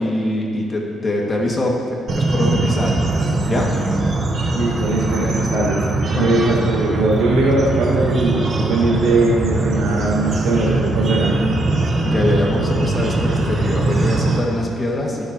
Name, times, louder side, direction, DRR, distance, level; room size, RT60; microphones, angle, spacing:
voice 1, 0.0-1.8 2.3-2.9 3.5-3.7 5.2-6.6 12.0-15.2, left 1 dB, 30° left, -2 dB, 2.1 m, -23 dB
sound 1, 2.1-14.4, right 2 dB, 50° right, 1.2 m, -21 dB
voice 2, 4.5-5.8 6.1-11.5, right 2 dB, 90° right, -3 dB, 1.8 m, -20 dB
17.0 x 7.6 x 3.0 m, 2.4 s
cardioid pair, 90°, 0 cm